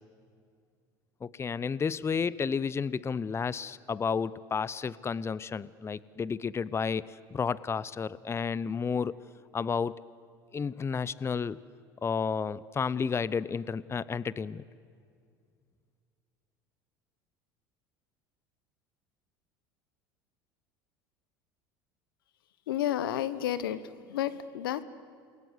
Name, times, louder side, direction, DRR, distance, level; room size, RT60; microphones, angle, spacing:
voice 1, 1.2-9.1 9.5-9.9 10.5-11.6 12.0-14.6, left 6 dB, 25° left, 20 dB, 0.6 m, -31 dB
voice 2, 22.7-24.8, left 11 dB, 85° left, 15 dB, 1.1 m, -31 dB
28.5 x 21.5 x 8.2 m, 2.3 s
hypercardioid pair, 85°, 11 cm